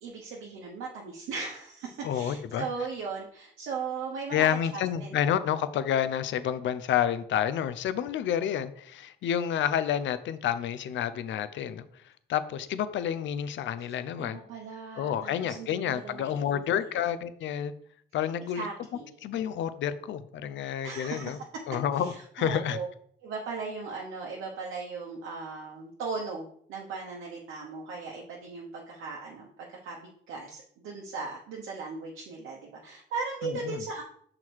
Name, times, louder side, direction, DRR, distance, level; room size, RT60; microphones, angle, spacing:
voice 1, 0.0-5.2 14.2-16.8 18.5-19.2 20.8-21.4 21.9-22.9 23.2-34.0, right 4 dB, 90° right, -2 dB, 1.0 m, -38 dB
voice 2, 2.0-2.7 4.3-14.4 15.0-17.7 18.1-18.7 19.2-21.4 21.7-22.8 33.4-33.8, left 9 dB, 70° left, 13 dB, 0.5 m, -29 dB
6.2 x 3.8 x 4.5 m, 0.63 s
cardioid pair, 90°, 20 cm